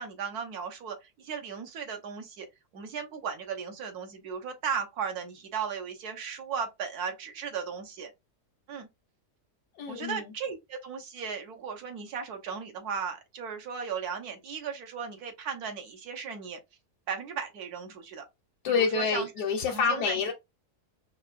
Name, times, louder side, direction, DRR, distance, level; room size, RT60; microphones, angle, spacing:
voice 1, 0.0-2.5 2.7-8.1 8.7-8.9 9.9-16.6 17.1-18.2 18.7-19.3 19.7-20.2, right 6 dB, 70° right, 1.3 m, -36 dB
voice 2, 9.8-10.3 18.6-20.3, left 5 dB, 85° left, 1.2 m, -27 dB
4.7 x 2.4 x 2.4 m
omnidirectional pair, 1.7 m